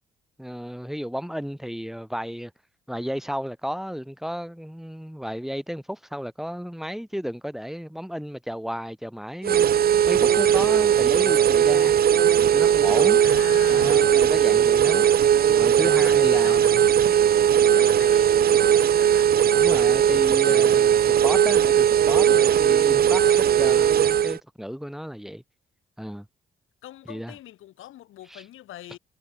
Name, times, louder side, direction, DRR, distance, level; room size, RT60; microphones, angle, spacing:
voice 1, 0.4-2.5 2.9-12.0 12.4-13.2 13.7-15.1 15.5-16.7 19.5-25.4 26.0-26.3 27.1-27.3 28.3-28.4, equal, ahead, 4.2 m, -33 dB
sound 1, 9.4-24.4, right 9 dB, 45° right, 0.6 m, -18 dB
voice 2, 13.2-14.1 14.5-14.6 16.1-19.3 26.8-29.0, left 13 dB, 75° left, 3.0 m, -42 dB
supercardioid pair, 55°, 21 cm